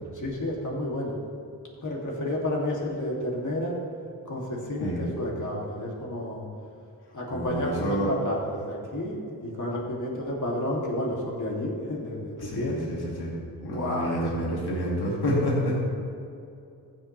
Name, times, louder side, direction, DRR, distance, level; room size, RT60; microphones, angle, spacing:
voice 1, 0.1-1.2 1.8-3.7 4.3-6.4 7.1-12.9 13.7-14.5, left 1 dB, 45° left, -2 dB, 2.6 m, -31 dB
voice 2, 7.3-8.1 12.4-13.3 13.6-15.9, equal, 65° left, -4 dB, 2.4 m, -28 dB
15.0 x 7.4 x 3.3 m, 2.5 s
cardioid pair, 70°, 42 cm